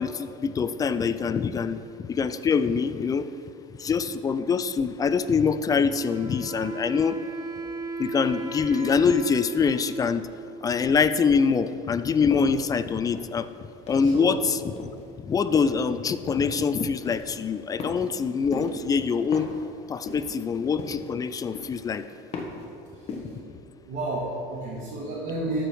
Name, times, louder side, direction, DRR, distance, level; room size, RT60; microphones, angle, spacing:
voice 1, 0.0-1.8 2.1-3.3 3.8-7.2 8.0-10.3 10.6-13.5 13.9-14.7 15.2-19.5 19.9-22.0, left 5 dB, 20° left, 12 dB, 0.3 m, -24 dB
Wind instrument woodwind instrument, 5.9-11.4, right 3 dB, 20° right, 0.9 m, -36 dB
sound 1, 12.3-12.6 13.1-14.2 14.7-15.0 15.5-15.9 16.3-16.6 17.0-17.4 17.8-18.2 18.5-18.9 19.3-19.6 20.0-20.4 20.8-21.2 21.5-21.9 22.3-22.7 23.1-23.4, left 4 dB, 35° left, 1.4 m, -36 dB
voice 2, 14.0-14.3 22.9-23.3 23.8-25.6, right 1 dB, 50° right, -6 dB, 2.1 m, -31 dB
13.0 x 5.0 x 4.6 m, 2.4 s
supercardioid pair, 125°, 17 cm